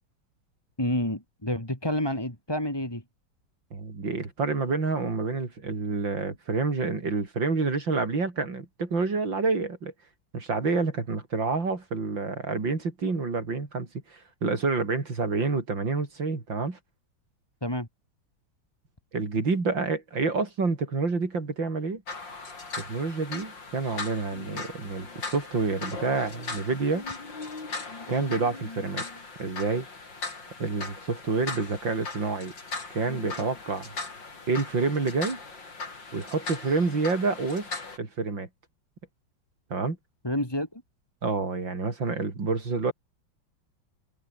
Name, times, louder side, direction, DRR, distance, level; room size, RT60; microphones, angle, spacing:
voice 1, 0.8-3.0 17.6-17.9 40.2-40.8, left 1 dB, 10° left, 3.6 m, -29 dB
voice 2, 3.7-9.9 10.3-16.8 19.1-22.0 22.8-27.0 28.1-29.1 29.4-29.9 30.6-32.5 32.9-33.9 34.5-35.4 36.1-37.7 38.0-38.5 39.7-40.0 41.2-42.9, right 4 dB, 70° right, 4.7 m, -28 dB
sound 1, 22.1-38.0, left 3 dB, 65° left, 4.9 m, -39 dB
omnidirectional pair, 2.1 m